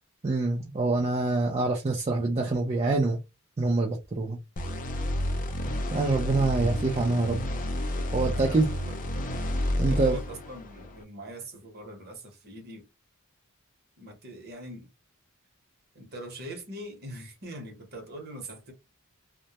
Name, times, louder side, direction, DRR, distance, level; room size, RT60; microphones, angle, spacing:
voice 1, 0.2-3.2 3.6-4.4 5.9-7.4 8.1-8.7 9.8-10.2, right 3 dB, 30° right, 0.4 m, -25 dB
sound 1, 4.6-11.0, left 1 dB, 35° left, 0.4 m, -31 dB
voice 2, 8.3-9.0 9.9-12.9 14.0-14.9 15.9-18.7, right 1 dB, 45° right, 0.9 m, -42 dB
2.1 x 2.1 x 2.8 m
head